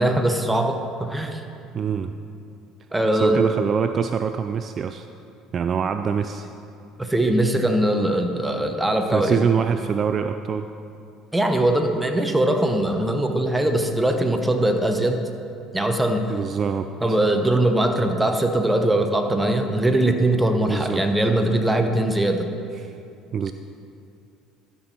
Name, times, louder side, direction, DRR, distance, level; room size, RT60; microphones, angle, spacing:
voice 1, 0.0-1.4 2.9-3.4 7.0-9.4 11.3-15.2 15.7-16.3 17.0-22.5, right 1 dB, 10° right, 5 dB, 1.0 m, -21 dB
voice 2, 1.7-2.1 3.1-5.1 5.5-6.5 9.1-10.7 16.3-16.9 20.7-21.0 22.8-22.9 23.3-23.5, right 7 dB, 45° right, 8 dB, 0.3 m, -24 dB
12.0 x 6.0 x 4.4 m, 2.5 s
hypercardioid pair, 70°, 0 cm